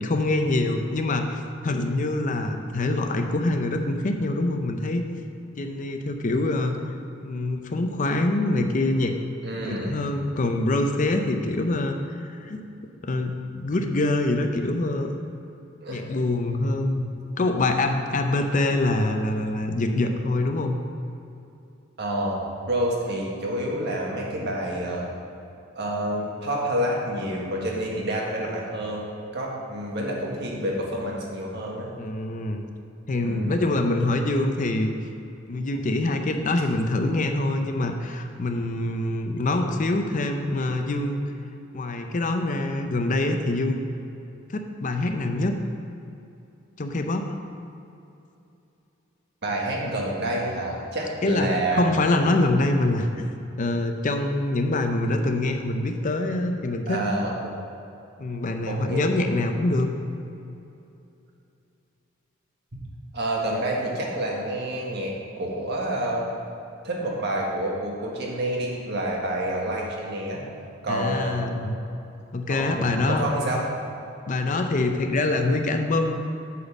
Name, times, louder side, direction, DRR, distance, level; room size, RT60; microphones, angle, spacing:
voice 1, 0.0-5.1 5.6-6.8 7.2-9.2 9.6-12.6 13.0-15.1 15.9-17.0 17.4-20.8 32.0-32.7 33.1-34.9 35.5-41.2 41.7-43.8 44.5-45.5 46.8-47.3 51.2-53.3 53.6-57.0 58.2-59.9 70.9-71.8 72.3-73.2 74.3-76.2, left 2 dB, 40° left, 5 dB, 0.5 m, -25 dB
voice 2, 9.4-10.0 15.8-16.0 22.0-22.4 22.7-25.1 25.7-31.9 33.2-33.6 49.4-51.8 56.9-57.5 58.7-59.0 63.1-66.3 66.8-70.4 70.8-71.4 72.5-73.6, right 1 dB, 55° right, -2 dB, 1.5 m, -28 dB
8.4 x 4.1 x 7.0 m, 2.7 s
head